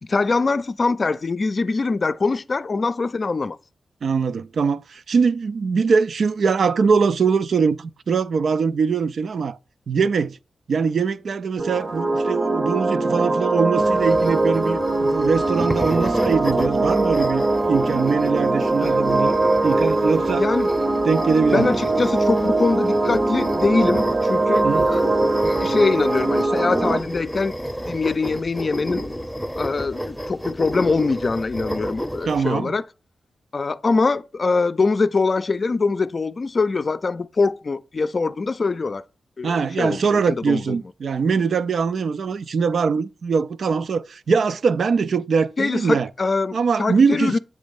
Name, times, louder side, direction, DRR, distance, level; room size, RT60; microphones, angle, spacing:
voice 1, 0.0-3.6 18.8-19.0 20.4-20.7 21.5-25.1 25.4-27.6 27.9-29.0 29.6-32.9 33.5-39.0 39.4-40.8 45.6-47.4, left 4 dB, 50° left, 0.4 m, -23 dB
voice 2, 4.0-9.6 9.9-10.4 10.7-19.4 19.6-20.4 21.0-21.8 24.6-24.9 32.3-32.7 39.4-46.1 46.5-47.4, right 5 dB, 70° right, 0.4 m, -22 dB
sound 1, 11.6-27.0, right 2 dB, 45° right, 0.8 m, -21 dB
sound 2, 13.8-32.4, equal, ahead, 0.7 m, -30 dB
7.7 x 3.1 x 5.2 m
cardioid pair, 55°, 0 cm